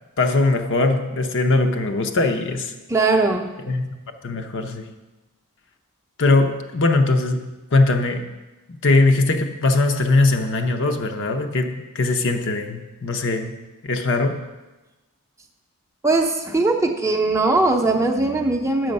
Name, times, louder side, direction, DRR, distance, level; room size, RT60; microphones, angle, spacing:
voice 1, 0.2-2.7 3.7-3.8 4.2-4.9 6.2-8.2 8.8-13.5 13.8-14.4, left 2 dB, 55° left, 5 dB, 0.7 m, -20 dB
voice 2, 2.9-3.5 16.0-18.9, right 3 dB, 15° right, 3 dB, 0.6 m, -20 dB
7.7 x 6.3 x 5.3 m, 1.1 s
head